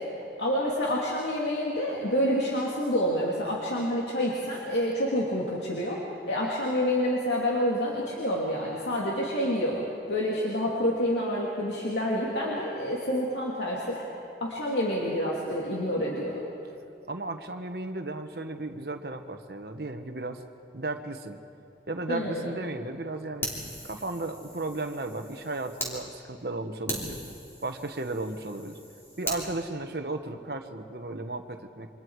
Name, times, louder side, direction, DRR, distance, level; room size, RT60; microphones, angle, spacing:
voice 1, 0.4-6.0 6.3-14.1 14.4-16.4 22.1-22.5, equal, 85° left, -4 dB, 2.7 m, -28 dB
voice 2, 17.1-20.4 20.7-21.4 21.9-23.5 23.8-27.2 27.6-28.8 29.2-31.9, right 2 dB, 60° right, 5 dB, 1.2 m, -35 dB
Fire, 23.4-25.9 26.4-26.5 26.9-29.4, equal, 15° left, 3.4 m, -38 dB
28.0 x 25.0 x 4.8 m, 2.7 s
head